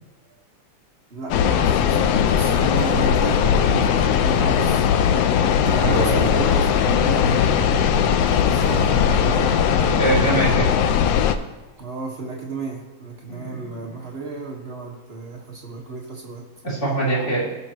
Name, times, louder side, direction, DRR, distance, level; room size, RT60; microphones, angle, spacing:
voice 1, 1.1-4.9 5.7-9.4 11.8-16.4, right 4 dB, 45° right, -2 dB, 0.8 m, -34 dB
sound 1, 1.3-11.4, left 8 dB, 85° left, 1.4 m, -19 dB
sound 2, 2.3-10.6, right 6 dB, 85° right, 2.0 m, -33 dB
voice 2, 5.6-6.2 9.9-10.7 13.3-14.0 16.6-17.4, right 2 dB, 25° left, -7 dB, 3.3 m, -24 dB
19.0 x 6.6 x 3.0 m, 1.3 s
omnidirectional pair, 3.4 m